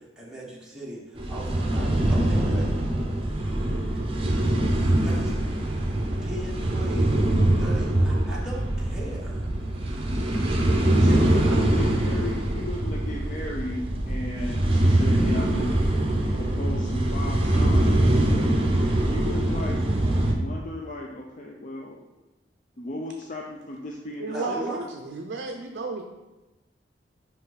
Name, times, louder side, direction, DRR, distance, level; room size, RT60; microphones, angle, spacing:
voice 1, 0.0-2.7 5.0-5.3 6.2-7.1 7.6-9.5 11.0-11.7 24.3-24.8, right 1 dB, 5° right, -6 dB, 1.3 m, -38 dB
sound 1, 1.2-20.3, right 1 dB, 30° right, 0.8 m, -23 dB
voice 2, 11.0-15.8 16.3-18.3 19.0-19.8 20.3-22.0 22.8-24.6, left 1 dB, 40° left, -1 dB, 0.5 m, -35 dB
voice 3, 24.2-26.0, right 3 dB, 60° right, 3 dB, 0.5 m, -33 dB
5.5 x 5.3 x 4.0 m, 1.1 s
head